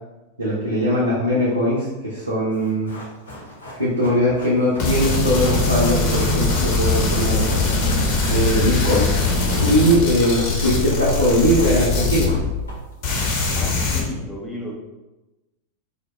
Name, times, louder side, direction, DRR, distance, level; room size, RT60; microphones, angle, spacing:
voice 1, 0.4-3.0 3.8-7.4 8.3-9.1 9.6-12.3, equal, 80° right, -9 dB, 0.6 m, -20 dB
Run, 2.5-13.1 13.4-13.5, left 1 dB, 75° left, 0.9 m, -39 dB
sound 1, 4.8-12.7 13.0-14.0, left 3 dB, 45° left, 0.7 m, -21 dB
voice 2, 13.5-14.7, left 1 dB, 10° left, -2 dB, 0.6 m, -33 dB
2.7 x 2.1 x 3.1 m, 1.0 s
figure-of-eight pair, 90°, 0 cm